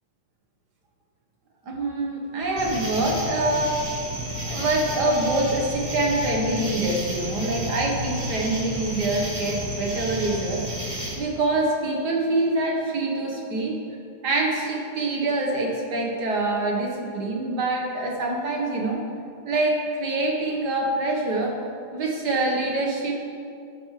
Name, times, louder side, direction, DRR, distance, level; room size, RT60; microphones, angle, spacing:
voice 1, 1.6-3.8 4.4-10.6 11.2-13.8 14.2-19.0 19.4-21.6 21.9-23.1, right 2 dB, 50° right, -1 dB, 1.3 m, -25 dB
sound 1, 2.6-11.1, equal, 25° right, 1.0 m, -31 dB
13.0 x 11.5 x 3.3 m, 2.4 s
omnidirectional pair, 3.5 m